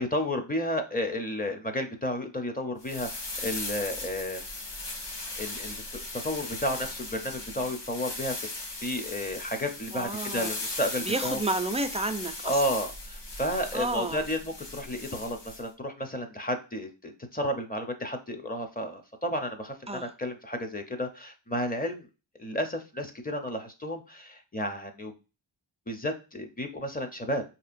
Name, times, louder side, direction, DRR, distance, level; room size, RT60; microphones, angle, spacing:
voice 1, 0.0-4.4 5.4-11.4 12.4-22.1 22.4-25.1 25.9-27.4, equal, 20° left, 0.6 m, -32 dB
sound 1, 2.8-15.6, left 2 dB, 55° left, 0.9 m, -38 dB
voice 2, 9.9-10.5 11.0-12.7 13.5-14.2 19.9-20.1, right 2 dB, 15° right, 0.3 m, -31 dB
4.9 x 2.8 x 2.5 m
wide cardioid pair, 65°, 49 cm